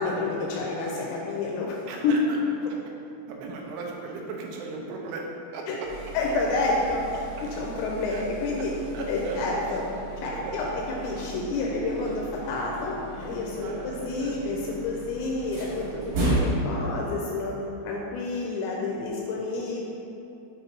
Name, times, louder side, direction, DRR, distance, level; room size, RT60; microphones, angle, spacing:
voice 1, 0.0-1.8 2.0-2.2 5.7-5.8 6.1-7.0 7.4-8.7 9.1-9.8 10.2-10.7 11.0-17.5 17.8-19.8, left 3 dB, 80° left, -2 dB, 2.6 m, -29 dB
voice 2, 1.9-2.8 3.3-5.9 7.1-7.2 8.1-8.2 8.6-8.7 8.9-9.4 10.2-10.7 13.6-14.4, right 3 dB, 85° right, -1 dB, 3.0 m, -37 dB
sound 1, 5.8-16.5, right 3 dB, 60° right, 2.0 m, -35 dB
7.9 x 2.6 x 5.2 m, 2.8 s
omnidirectional pair, 5.4 m